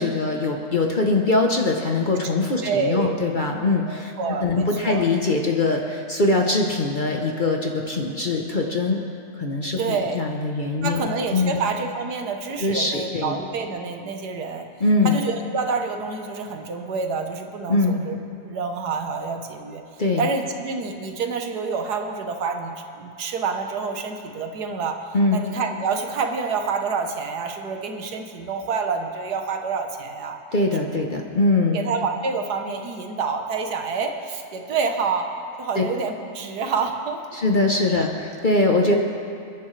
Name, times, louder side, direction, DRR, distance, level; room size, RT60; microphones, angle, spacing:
voice 1, 0.0-4.1 4.4-9.0 9.4-11.6 12.6-13.4 14.8-15.2 17.7-18.0 20.0-20.3 25.1-25.4 30.5-31.8 35.7-35.8 37.3-39.0, left 2 dB, 35° left, 1 dB, 0.9 m, -22 dB
voice 2, 2.6-3.2 3.9-5.0 9.8-10.2 10.8-14.7 15.0-19.8 20.2-30.4 30.8-31.0 31.7-35.3 35.6-37.2 37.9-38.0 38.8-39.0, right 5 dB, 80° right, 4 dB, 1.6 m, -28 dB
28.0 x 10.5 x 3.3 m, 2.5 s
omnidirectional pair, 1.7 m